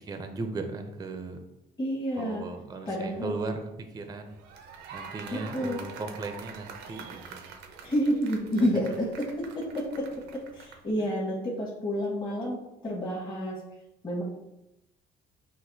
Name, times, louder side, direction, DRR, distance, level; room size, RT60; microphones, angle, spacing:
voice 1, 0.0-1.4 2.2-4.4 4.9-7.5, right 3 dB, 20° right, 6 dB, 0.5 m, -37 dB
voice 2, 1.8-2.5 2.8-3.3 5.3-5.9 7.8-13.6 14.0-14.2, equal, 25° left, -5 dB, 1.2 m, -30 dB
sound 1, 4.3-10.9, right 6 dB, 85° right, 0.6 m, -45 dB
5.9 x 2.5 x 2.7 m, 0.89 s
cardioid pair, 110°, 17 cm